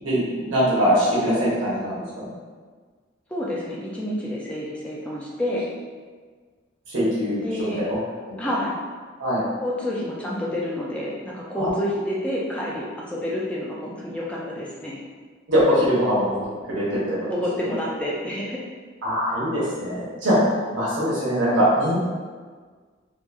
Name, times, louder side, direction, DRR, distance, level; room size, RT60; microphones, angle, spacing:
voice 1, 0.0-2.2 6.9-8.0 8.3-8.4 9.2-9.4 11.6-11.7 15.5-16.4 16.7-17.2 17.6-17.7 19.0-20.4 20.7-22.0, equal, 80° right, -8 dB, 0.8 m, -22 dB
voice 2, 3.3-5.7 7.4-7.8 8.4-8.8 9.6-15.0 17.3-18.6, left 1 dB, 5° left, -5 dB, 0.3 m, -29 dB
2.9 x 2.2 x 2.2 m, 1.5 s
head